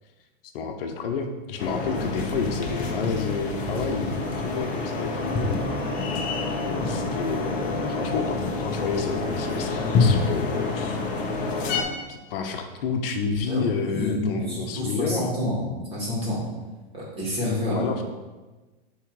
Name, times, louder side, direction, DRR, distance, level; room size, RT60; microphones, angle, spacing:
voice 1, 0.5-5.7 6.7-11.0 12.1-15.3 17.7-18.0, left 5 dB, 70° left, 5 dB, 0.9 m, -30 dB
sound 1, 1.6-11.8, left 3 dB, 25° left, 0.8 m, -27 dB
voice 2, 13.5-15.6 15.9-16.4 16.9-17.8, left 1 dB, 20° right, -6 dB, 2.1 m, -28 dB
7.3 x 3.2 x 4.8 m, 1.2 s
supercardioid pair, 155°, 29 cm